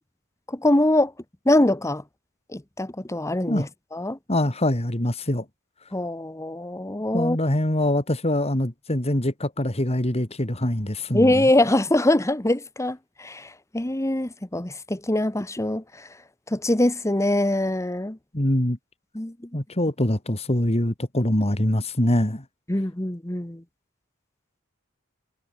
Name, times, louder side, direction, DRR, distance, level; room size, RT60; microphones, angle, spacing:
voice 1, 0.5-1.1 1.4-2.0 2.5-4.2 5.9-7.4 11.1-16.1 16.5-18.2 19.1-19.5 22.7-23.6, left 1 dB, 15° left, 1.1 m, -23 dB
voice 2, 4.3-5.4 7.1-11.4 18.3-18.8 19.5-22.4, left 1 dB, 30° left, 2.6 m, -24 dB
head